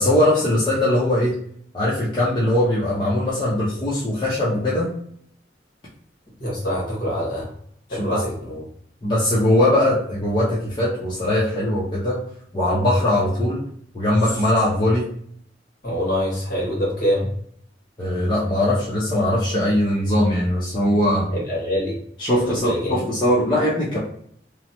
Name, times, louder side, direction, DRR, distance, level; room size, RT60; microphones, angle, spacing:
voice 1, 0.0-1.3 1.7-4.9 7.9-8.2 9.0-12.2 12.5-13.6 13.9-15.1 18.0-21.3 22.2-24.0, left 1 dB, 25° left, -8 dB, 0.6 m, -20 dB
voice 2, 6.4-7.5 7.9-8.6 15.8-17.3 21.3-22.0 22.4-23.0, equal, 50° left, -4 dB, 1.4 m, -25 dB
3.1 x 2.1 x 2.8 m, 0.65 s
head